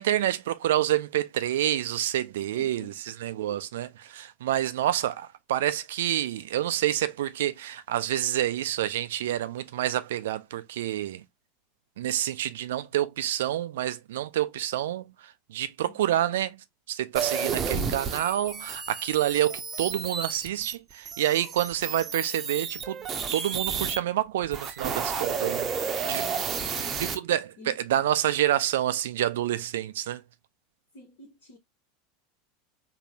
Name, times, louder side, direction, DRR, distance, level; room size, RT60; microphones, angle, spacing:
voice 1, 0.0-11.2 12.0-16.6 16.9-23.0 23.3-26.2 27.0-30.2, right 12 dB, 60° right, 0.3 m, -28 dB
voice 2, 2.5-3.0 3.5-3.7 4.8-4.9 15.8-16.0 26.0-27.2 27.6-27.8 30.9-31.6, left 3 dB, 55° left, 0.9 m, -48 dB
sound 1, 17.2-24.0 24.4-27.2, right 6 dB, 30° right, 0.6 m, -31 dB
3.6 x 2.1 x 2.7 m
figure-of-eight pair, 80°, 0 cm